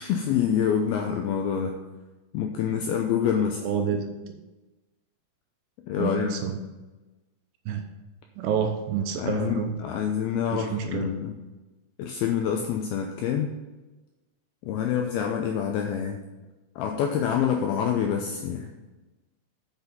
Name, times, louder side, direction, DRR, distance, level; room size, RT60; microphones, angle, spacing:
voice 1, 0.0-1.8 2.3-3.6 5.9-6.3 9.2-11.3 12.0-13.5 14.6-16.2 16.8-18.7, left 8 dB, 80° left, 3 dB, 2.2 m, -26 dB
voice 2, 3.6-4.2 6.0-6.6 7.7-7.8 8.4-9.8 10.5-11.1, right 7 dB, 80° right, 5 dB, 2.6 m, -28 dB
8.0 x 6.2 x 5.5 m, 1.1 s
omnidirectional pair, 5.1 m